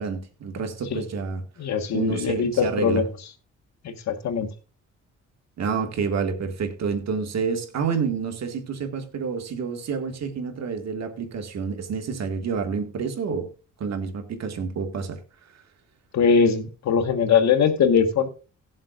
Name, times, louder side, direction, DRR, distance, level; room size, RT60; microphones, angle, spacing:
voice 1, 0.0-1.4 1.9-3.0 5.6-13.5 13.8-15.2, right 5 dB, 60° right, 2.0 m, -28 dB
voice 2, 1.6-3.0 3.8-4.5 16.1-18.3, left 6 dB, 65° left, 1.5 m, -21 dB
18.5 x 7.4 x 2.5 m
cardioid pair, 90°, 30 cm